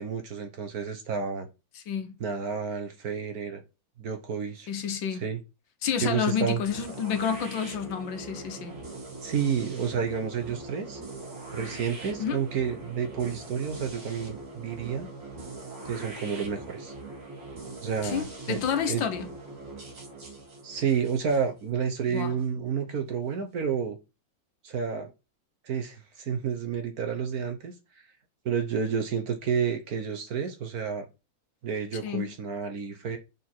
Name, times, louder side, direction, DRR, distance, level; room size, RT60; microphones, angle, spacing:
voice 1, 0.0-1.5 2.2-3.6 4.0-4.7 5.1-5.4 6.0-6.6 9.2-11.0 11.5-15.1 15.8-16.9 17.8-18.6 18.9-19.0 20.6-24.0 24.6-25.1 25.6-27.7 28.4-31.1 31.6-33.2, right 7 dB, 55° right, 1.3 m, -30 dB
voice 2, 1.8-2.1 4.7-5.3 5.8-8.8 12.2-12.4 18.0-19.3 22.1-22.3 32.0-32.3, left 7 dB, 75° left, 1.7 m, -30 dB
sound 1, 6.6-22.5, right 2 dB, 70° right, 3.1 m, -42 dB
6.1 x 4.3 x 4.4 m
omnidirectional pair, 2.1 m